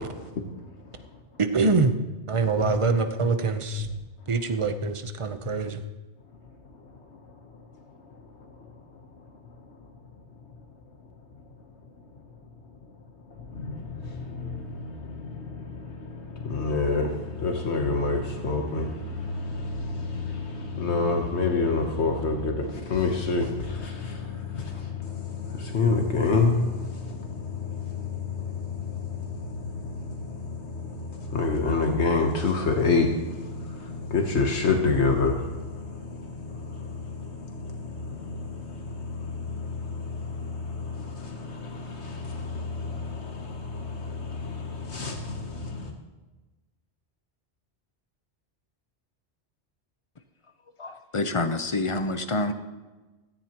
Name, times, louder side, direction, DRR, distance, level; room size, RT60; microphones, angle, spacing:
voice 1, 1.4-2.0 2.3-3.9 4.3-5.8, right 4 dB, 30° right, 8 dB, 0.8 m, -24 dB
voice 2, 13.6-45.9, left 4 dB, 75° left, 3 dB, 1.4 m, -28 dB
voice 3, 50.8-52.5, left 2 dB, 30° left, 9 dB, 0.7 m, -27 dB
17.0 x 14.0 x 3.0 m, 1.2 s
omnidirectional pair, 1.2 m